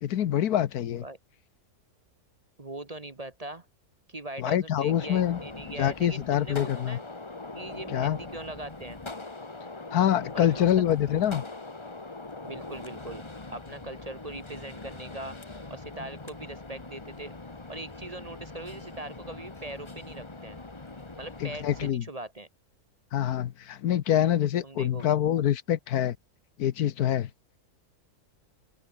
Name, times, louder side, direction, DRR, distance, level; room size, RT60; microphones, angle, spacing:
voice 1, 0.0-1.0 4.4-5.4 5.8-7.0 7.9-8.2 9.9-11.4 21.4-22.0 23.1-26.2 26.6-27.3, left 10 dB, 80° left, 1.4 m, -25 dB
voice 2, 2.6-3.7 4.1-7.0 7.5-9.0 10.3-10.7 12.4-13.2 13.5-15.4 15.7-17.3 17.7-20.6 21.2-22.5 24.6-25.1, right 2 dB, 25° right, 1.3 m, -41 dB
Gunshot gunfire, 4.9-21.9, left 3 dB, 20° left, 1.4 m, -42 dB
open air
omnidirectional pair, 1.6 m